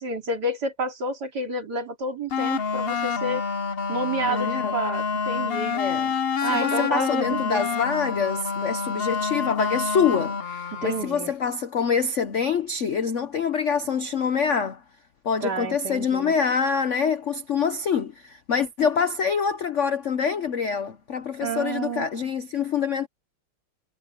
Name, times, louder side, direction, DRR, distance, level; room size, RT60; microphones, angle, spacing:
voice 1, 0.0-3.4 3.9-5.8 6.4-7.6 10.7-11.3 15.4-16.3 21.4-22.1, right 2 dB, 50° right, 3.4 m, -29 dB
sound 1, 2.3-11.1, left 5 dB, 90° left, 0.5 m, -27 dB
voice 2, 4.3-4.7 5.7-6.1 6.5-14.8 15.2-23.1, left 6 dB, 60° left, 0.8 m, -25 dB
omnidirectional pair, 2.3 m